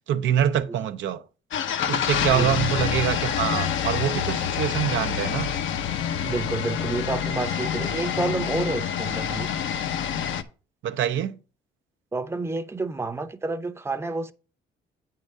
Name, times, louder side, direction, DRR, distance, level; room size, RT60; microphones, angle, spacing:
voice 1, 0.1-1.2 1.9-5.5 10.8-11.4, right 10 dB, 70° right, 0.6 m, -25 dB
sound 1, 1.5-10.4, left 8 dB, 75° left, 0.8 m, -27 dB
voice 2, 2.3-2.6 6.2-9.5 12.1-14.3, right 3 dB, 15° right, 0.7 m, -29 dB
8.7 x 3.7 x 6.4 m
cardioid pair, 90°, 20 cm